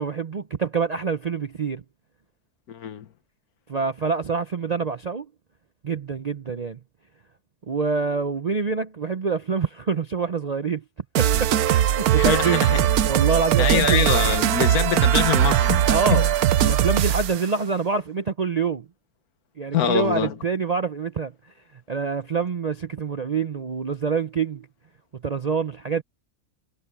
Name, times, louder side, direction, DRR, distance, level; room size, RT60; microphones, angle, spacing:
voice 1, 0.0-1.8 3.7-5.3 5.8-6.8 7.7-10.8 11.2-14.1 15.9-16.3 16.6-18.9 19.6-21.3 21.9-24.7 25.1-26.0, right 5 dB, 50° right, 0.4 m, -26 dB
voice 2, 2.7-3.1 12.2-12.9 13.6-16.3 19.7-20.3, left 9 dB, 80° left, 1.5 m, -25 dB
sound 1, 11.2-17.4, right 11 dB, 85° right, 1.2 m, -20 dB
omnidirectional pair, 1.5 m